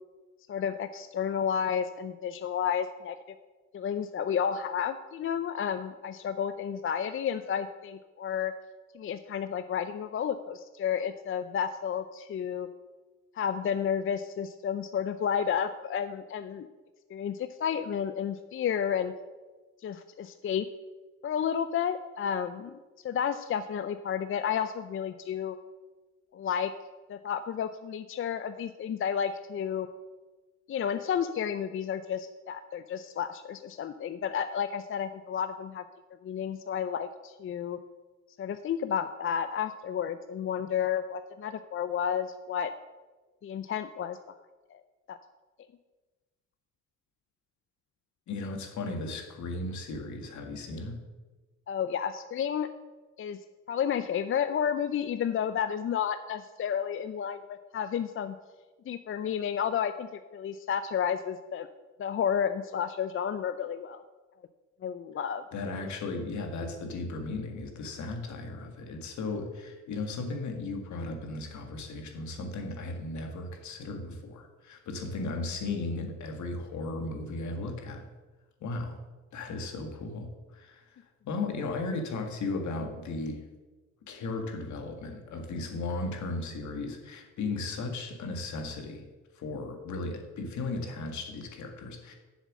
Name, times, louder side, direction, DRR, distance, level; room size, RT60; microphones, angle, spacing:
voice 1, 0.5-3.2 3.7-8.5 8.9-12.7 13.3-16.7 17.1-19.1 19.8-20.7 21.2-22.8 23.0-25.6 26.3-26.7 27.1-29.9 30.7-35.8 36.2-37.8 38.4-42.7 43.4-44.2 44.7-44.8 45.1-45.2 51.7-52.7 53.2-53.4 53.7-58.3 58.9-61.7 62.0-64.0 64.8-65.4, left 8 dB, 45° left, 11 dB, 0.5 m, -31 dB
voice 2, 48.3-51.0 65.5-78.0 78.6-79.0 79.3-80.9 81.3-83.4 84.1-89.0 89.4-92.1, left 3 dB, 70° left, 4 dB, 1.8 m, -36 dB
7.4 x 7.2 x 7.5 m, 1.3 s
cardioid pair, 90°, 30 cm